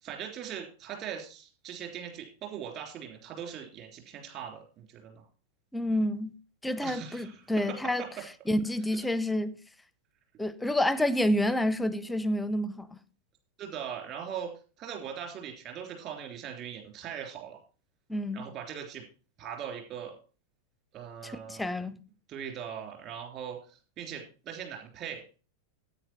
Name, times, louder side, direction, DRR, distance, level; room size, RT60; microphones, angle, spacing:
voice 1, 0.0-5.2 6.8-7.5 13.6-14.5 14.8-17.6 18.3-19.0 19.4-20.1 20.9-21.6 22.3-25.2, right 8 dB, 35° right, 3.2 m, -40 dB
voice 2, 5.7-6.4 6.6-8.0 8.5-9.6 10.4-13.0 18.1-18.5 21.2-22.0, left 1 dB, 5° left, 0.6 m, -29 dB
9.9 x 8.8 x 4.3 m
figure-of-eight pair, 90°, 0 cm